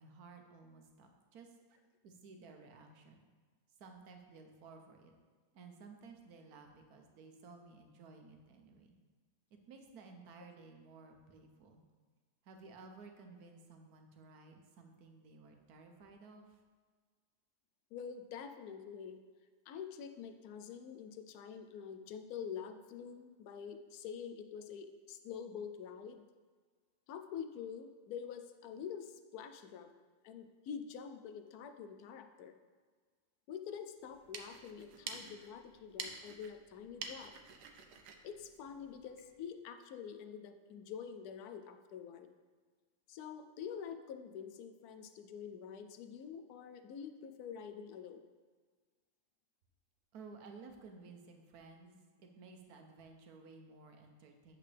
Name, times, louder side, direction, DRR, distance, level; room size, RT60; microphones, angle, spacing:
voice 1, 0.0-1.5 2.0-3.3 3.8-5.1 5.5-9.0 9.7-11.8 12.4-16.6 50.1-54.6, right 4 dB, 70° right, 4 dB, 1.3 m, -55 dB
voice 2, 17.9-19.2 19.7-26.2 27.1-29.9 30.2-32.5 33.5-37.3 38.2-42.3 43.1-48.2, left 7 dB, 75° left, 8 dB, 1.1 m, -46 dB
sound 1, 34.0-39.3, right 5 dB, 85° right, 1.3 m, -49 dB
8.5 x 6.5 x 3.4 m, 1.5 s
omnidirectional pair, 1.7 m